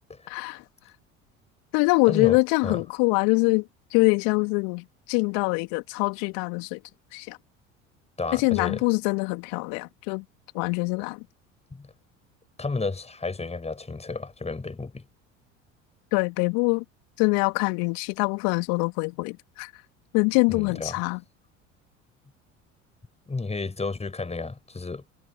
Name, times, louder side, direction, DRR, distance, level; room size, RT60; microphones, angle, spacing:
voice 1, 0.3-0.6 1.7-6.8 7.1-7.4 8.3-10.2 10.5-11.2 16.1-16.8 17.2-19.7 20.1-21.2, left 33 dB, 60° left, 3.1 m, -24 dB
voice 2, 2.1-2.8 8.2-8.8 11.7-11.9 12.6-15.0 20.5-21.0 23.3-25.0, left 3 dB, 15° left, 5.9 m, -32 dB
figure-of-eight pair, 65°, 39 cm